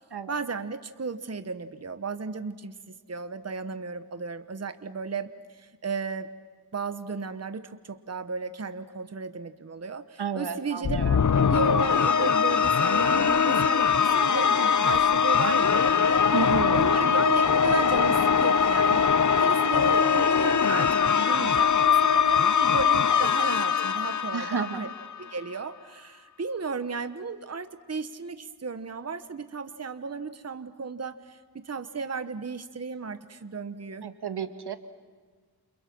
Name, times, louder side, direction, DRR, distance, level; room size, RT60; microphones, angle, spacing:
voice 1, 0.3-2.7 3.1-6.3 6.7-11.0 11.5-16.2 16.7-19.1 19.4-24.9 25.2-31.4 31.6-34.1, right 4 dB, 40° right, 10 dB, 1.1 m, -34 dB
voice 2, 10.2-11.2 16.3-16.8 24.3-24.8 34.0-34.8, right 6 dB, 90° right, 8 dB, 1.5 m, -31 dB
sound 1, 10.8-25.2, left 6 dB, 50° left, 0.8 m, -22 dB
29.5 x 28.5 x 6.1 m, 1.5 s
wide cardioid pair, 90°, 39 cm